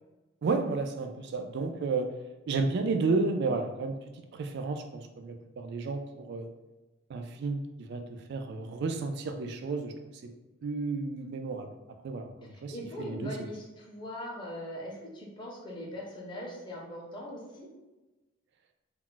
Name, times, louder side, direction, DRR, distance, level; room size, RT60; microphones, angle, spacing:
voice 1, 0.4-2.1 2.5-6.5 7.1-9.9 10.2-10.3 10.6-11.8 12.0-12.7 13.0-13.5, right 3 dB, 55° right, 6 dB, 0.3 m, -32 dB
voice 2, 12.5-17.7, equal, 25° left, -3 dB, 0.6 m, -41 dB
2.3 x 2.1 x 3.7 m, 1.1 s
head